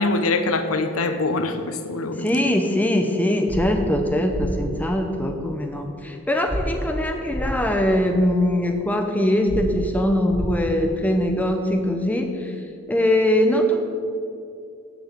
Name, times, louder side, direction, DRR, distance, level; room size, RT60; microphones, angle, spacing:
voice 1, 0.0-2.3, left 3 dB, 85° left, 8 dB, 0.7 m, -23 dB
voice 2, 2.2-12.5 12.9-13.8, left 1 dB, 5° left, 4 dB, 0.6 m, -22 dB
sound 1, 3.5-3.6 4.3-4.4 6.5-6.6 7.3-7.4 9.5-9.6 10.3-10.4, equal, 25° left, 1.7 m, -28 dB
6.9 x 6.0 x 7.5 m, 2.5 s
head